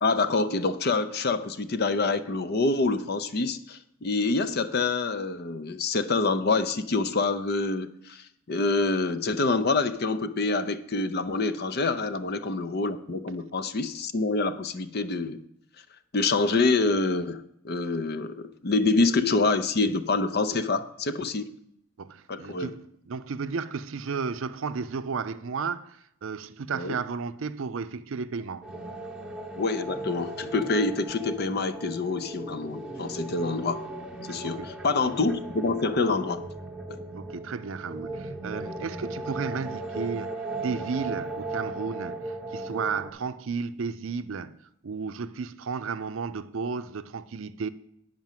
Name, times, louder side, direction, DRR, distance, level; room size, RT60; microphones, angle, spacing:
voice 1, 0.0-15.4 16.1-21.5 22.3-22.7 26.7-27.0 29.6-33.8 34.3-36.4 36.9-37.0, left 3 dB, 50° left, 0.6 m, -26 dB
voice 2, 22.0-28.7 34.6-34.7 37.1-47.7, right 5 dB, 65° right, 0.5 m, -33 dB
sound 1, 28.6-43.1, right 2 dB, 5° right, 0.9 m, -37 dB
9.3 x 5.1 x 7.4 m
head